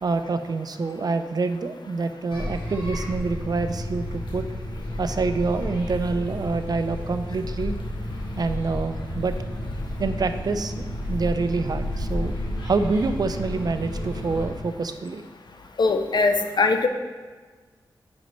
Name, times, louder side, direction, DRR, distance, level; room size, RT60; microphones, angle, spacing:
voice 1, 0.0-4.4 5.0-7.8 8.4-9.3 10.0-12.3 12.6-15.2, right 4 dB, 55° right, 9 dB, 0.4 m, -26 dB
sound 1, 2.3-14.5, left 1 dB, 85° left, 1.4 m, -31 dB
voice 2, 15.8-16.9, left 3 dB, 65° left, 6 dB, 0.6 m, -21 dB
8.6 x 5.2 x 3.1 m, 1.4 s
wide cardioid pair, 70°, 8 cm